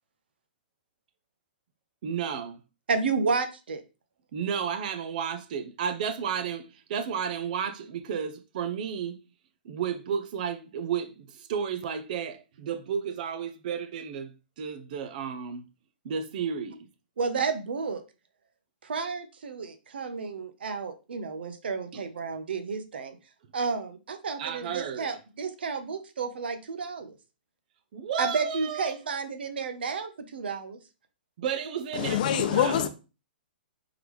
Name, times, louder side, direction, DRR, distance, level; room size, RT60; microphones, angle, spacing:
voice 1, 2.0-2.6 4.3-9.2 9.6-15.7 16.0-16.9 21.9-22.0 24.4-25.1 27.9-29.0 31.4-32.9, right 7 dB, 55° right, 0.6 m, -32 dB
voice 2, 2.9-3.8 17.2-18.0 18.8-23.2 23.5-27.1 28.2-30.8, right 4 dB, 80° right, 0.8 m, -31 dB
voice 3, 31.9-32.9, left 9 dB, 55° left, 0.6 m, -25 dB
3.8 x 3.5 x 3.0 m
hypercardioid pair, 145°, 5 cm